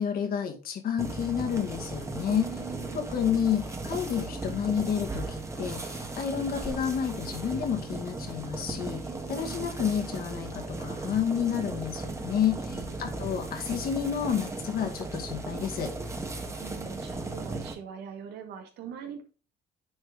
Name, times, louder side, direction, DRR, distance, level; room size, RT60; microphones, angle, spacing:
voice 1, 0.0-2.4 2.9-9.0 9.3-15.9, left 8 dB, 60° left, 3 dB, 2.2 m, -30 dB
sound 1, 1.0-17.7, right 2 dB, 15° right, 1.6 m, -36 dB
voice 2, 2.3-3.2 9.0-9.7 12.6-13.2 16.6-19.2, right 8 dB, 75° right, 4 dB, 2.1 m, -42 dB
9.6 x 4.5 x 3.8 m, 0.33 s
cardioid pair, 110°, 17 cm